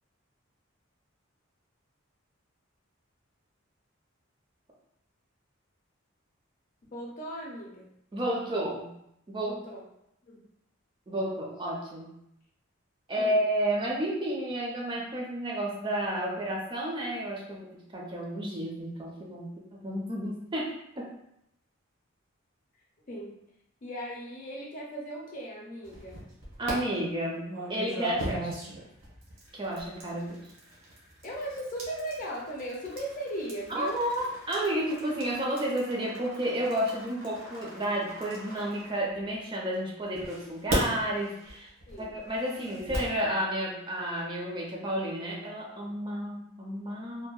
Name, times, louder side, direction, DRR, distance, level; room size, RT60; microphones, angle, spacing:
voice 1, 6.9-7.9 9.4-9.8 10.3-10.4 13.2-13.4 23.1-23.4 23.8-26.2 31.2-34.0 41.9-42.2, right 1 dB, 40° left, -2 dB, 0.5 m, -37 dB
voice 2, 8.1-8.9 9.3-9.6 11.1-12.1 13.1-17.7 17.9-19.5 19.8-21.1 26.6-28.5 29.5-30.4 33.7-41.7 42.0-47.3, right 1 dB, 25° right, -3 dB, 0.4 m, -31 dB
sound 1, 25.8-26.7 27.5-39.5 40.1-43.2, right 1 dB, 80° right, 0.8 m, -39 dB
2.6 x 2.0 x 2.3 m, 0.78 s
head